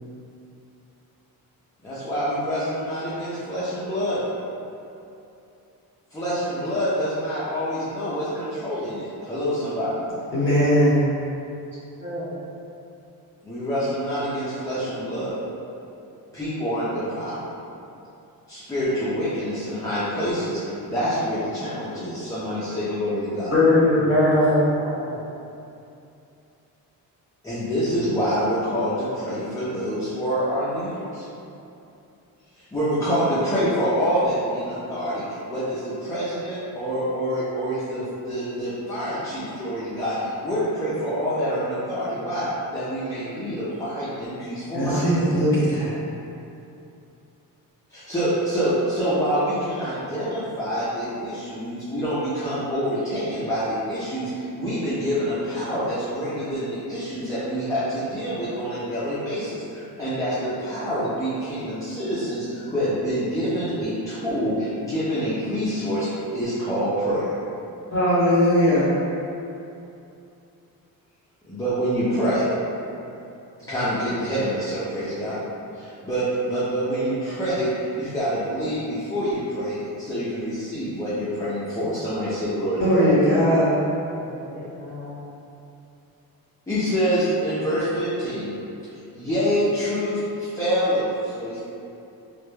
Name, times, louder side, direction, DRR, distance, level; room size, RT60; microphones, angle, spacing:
voice 1, 1.8-4.2 6.1-9.9 13.4-15.4 16.3-17.5 18.5-23.5 27.4-31.3 32.6-42.5 42.7-45.1 47.9-66.1 66.3-67.3 71.4-72.5 73.7-75.4 75.7-83.1 86.7-88.5 89.1-91.6, equal, 10° left, -12 dB, 0.3 m, -26 dB
voice 2, 10.3-11.0 23.5-24.6 44.7-45.9 67.9-68.8 82.8-83.7, left 1 dB, 35° left, -9 dB, 0.8 m, -19 dB
voice 3, 12.0-12.4 24.3-25.2 84.2-85.2, equal, 30° right, -12 dB, 0.9 m, -36 dB
2.2 x 2.1 x 3.0 m, 2.7 s
cardioid pair, 135°, 37 cm